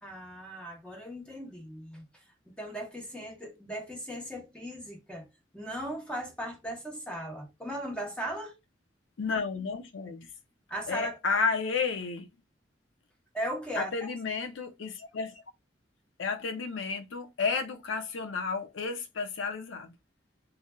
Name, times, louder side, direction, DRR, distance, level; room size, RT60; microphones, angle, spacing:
voice 1, 0.0-2.0 2.6-5.3 5.5-8.6 10.7-11.2 13.3-14.1, right 1 dB, 5° left, 0.7 m, -37 dB
voice 2, 9.2-10.3 10.9-12.3 13.8-15.3 16.2-19.9, left 4 dB, 90° left, 0.5 m, -32 dB
3.1 x 2.4 x 2.2 m
head